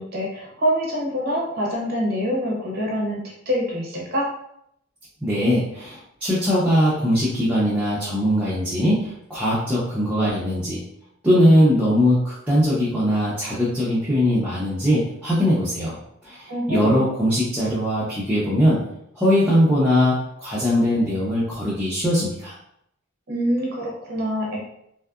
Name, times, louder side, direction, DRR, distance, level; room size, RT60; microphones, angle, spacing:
voice 1, 0.0-4.3 16.5-17.0 23.3-24.6, equal, 45° right, -3 dB, 0.6 m, -25 dB
voice 2, 5.2-10.8 11.2-16.0 16.2-18.8 19.2-22.5, equal, 5° right, -9 dB, 0.5 m, -20 dB
2.7 x 2.3 x 2.3 m, 0.74 s
head